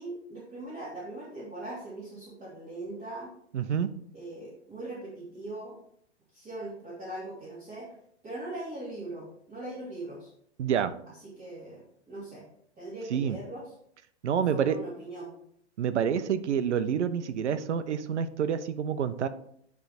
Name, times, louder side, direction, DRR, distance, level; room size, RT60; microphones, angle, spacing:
voice 1, 0.0-3.3 4.1-5.7 6.3-7.9 8.2-10.3 11.4-12.4 12.8-13.6 14.5-15.3, right 2 dB, 20° right, -9 dB, 2.9 m, -40 dB
voice 2, 3.5-3.9 10.6-10.9 13.1-13.4 14.2-14.8 15.8-19.3, right 8 dB, 80° right, 12 dB, 0.8 m, -28 dB
10.5 x 3.5 x 4.3 m, 0.69 s
hypercardioid pair, 125°, 34 cm